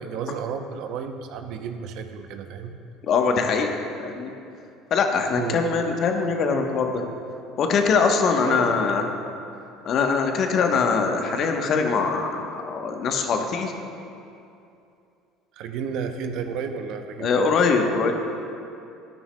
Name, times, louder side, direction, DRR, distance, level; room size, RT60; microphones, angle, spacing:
voice 1, 0.0-2.7 5.3-5.6 8.4-8.8 15.6-17.5, right 6 dB, 65° right, 7 dB, 0.7 m, -32 dB
voice 2, 3.0-4.3 4.9-7.0 7.6-9.0 9.8-13.7 17.2-18.1, left 5 dB, 55° left, 4 dB, 1.0 m, -22 dB
13.0 x 9.9 x 2.2 m, 2.7 s
hypercardioid pair, 70°, 0 cm